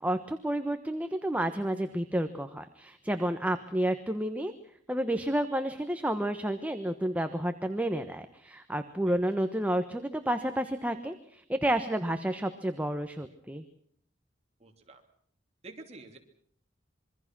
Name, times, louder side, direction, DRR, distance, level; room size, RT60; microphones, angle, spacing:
voice 1, 0.0-4.5 4.9-13.6, right 1 dB, 10° right, 7 dB, 1.1 m, -30 dB
voice 2, 14.6-15.0 15.6-16.2, right 2 dB, 35° right, 4 dB, 3.0 m, -48 dB
26.5 x 23.5 x 6.1 m, 0.62 s
head